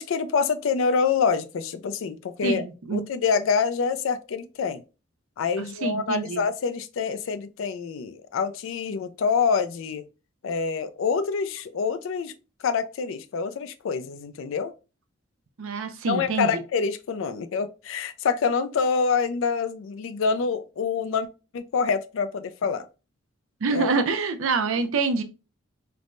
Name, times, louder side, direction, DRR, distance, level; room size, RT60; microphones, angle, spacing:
voice 1, 0.0-2.6 2.9-4.8 5.4-10.1 10.4-12.3 12.6-14.7 16.1-21.3 21.5-22.8 23.7-23.9, left 5 dB, 75° left, 0.3 m, -26 dB
voice 2, 2.4-3.0 5.8-6.4 15.6-16.6 23.6-25.2, right 4 dB, 85° right, 0.5 m, -26 dB
3.3 x 2.1 x 2.5 m
head